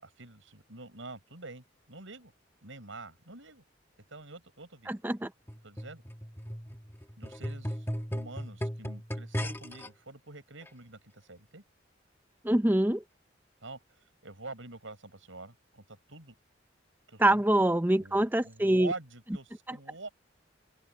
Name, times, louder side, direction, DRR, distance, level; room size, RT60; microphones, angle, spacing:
voice 1, 0.0-2.3 2.6-3.6 4.1-4.9 5.6-6.0 7.2-7.9 8.1-11.6 13.6-13.8 14.2-16.3 17.1-17.4 18.0-20.1, right 3 dB, 85° right, 5.8 m, -46 dB
voice 2, 4.9-5.3 12.4-13.0 17.2-18.9 19.7-19.8, right 1 dB, 10° right, 0.6 m, -25 dB
sound 1, 5.5-9.9 10.7-10.8, equal, 10° left, 1.7 m, -37 dB
open air
head